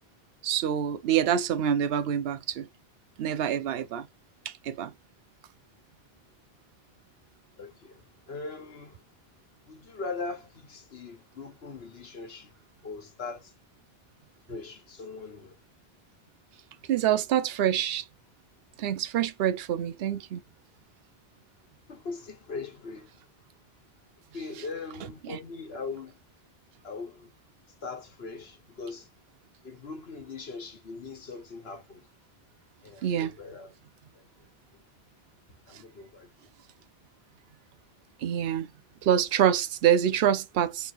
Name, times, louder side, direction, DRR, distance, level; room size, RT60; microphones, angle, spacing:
voice 1, 0.4-2.7 3.2-4.1 4.5-4.9 16.9-18.0 18.8-20.4 25.2-25.4 33.0-33.3 38.2-38.7 39.0-40.9, right 10 dB, 75° right, 0.8 m, -26 dB
voice 2, 7.6-9.0 9.7-12.5 12.8-13.5 14.5-15.6 21.9-23.1 24.3-26.2 26.8-27.3 27.8-29.1 29.6-32.0 32.8-33.7 35.7-36.3, left 4 dB, 75° left, 1.5 m, -40 dB
6.6 x 3.1 x 2.6 m
omnidirectional pair, 1.0 m